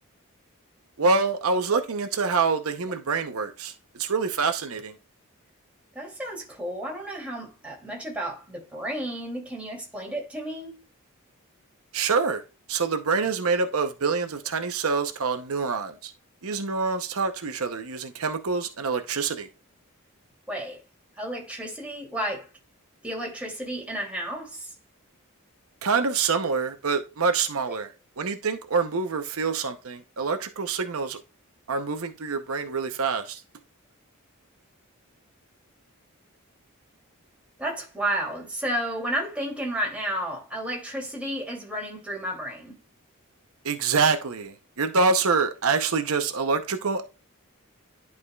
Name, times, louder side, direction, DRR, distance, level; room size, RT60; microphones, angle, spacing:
voice 1, 1.0-3.7 4.0-4.9 11.9-12.4 12.7-16.1 16.4-19.5 25.8-27.9 28.2-31.2 31.7-33.4 43.6-47.0, right 4 dB, 75° right, 0.8 m, -26 dB
voice 2, 5.9-10.8 20.5-20.8 21.2-22.4 23.0-24.7 37.6-42.7, right 1 dB, 5° right, 2.6 m, -32 dB
11.0 x 4.8 x 2.3 m
head